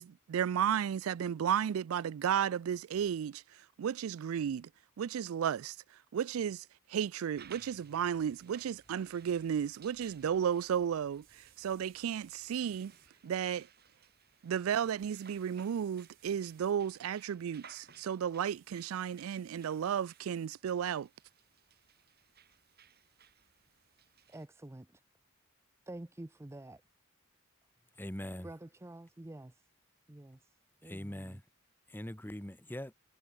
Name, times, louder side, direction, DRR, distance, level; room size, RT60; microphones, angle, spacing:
voice 1, 0.0-3.4 3.8-4.7 5.0-5.8 6.1-6.6 6.9-12.9 13.2-13.7 14.4-21.1, right 8 dB, 90° right, 0.4 m, -33 dB
sound 1, 7.4-24.5, right 8 dB, 50° right, 4.7 m, -61 dB
sound 2, 7.5-13.7, equal, 30° right, 3.6 m, -70 dB
sound 3, 11.2-13.1 15.0-16.8 18.5-20.5, right 13 dB, 65° right, 7.9 m, -66 dB
voice 2, 24.3-25.0 25.9-26.8 28.4-29.6 30.1-30.5 30.8-31.4, right 1 dB, 15° right, 0.5 m, -48 dB
voice 3, 28.0-28.5 30.8-31.4 31.9-32.9, left 1 dB, 10° left, 1.3 m, -42 dB
head